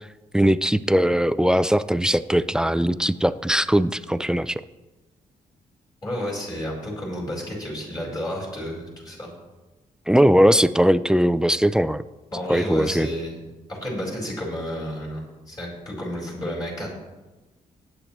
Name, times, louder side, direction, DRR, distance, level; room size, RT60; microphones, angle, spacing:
voice 1, 0.3-4.6 10.1-12.0 12.5-13.1, equal, 5° right, 14 dB, 0.3 m, -20 dB
voice 2, 6.0-9.3 12.3-13.4 13.7-16.9, equal, 25° left, -4 dB, 4.6 m, -31 dB
19.0 x 8.7 x 3.0 m, 1.2 s
cardioid pair, 120°, 14 cm